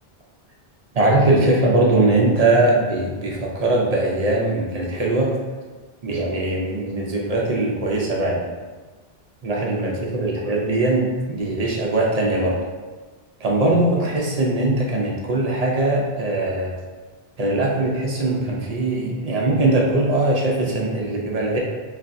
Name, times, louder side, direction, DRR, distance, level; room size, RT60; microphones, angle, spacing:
voice 1, 0.9-5.3 6.0-8.5 9.4-12.6 13.4-16.7 17.4-21.6, right 2 dB, 50° right, -2 dB, 0.5 m, -21 dB
3.2 x 2.6 x 2.5 m, 1.3 s
omnidirectional pair, 1.1 m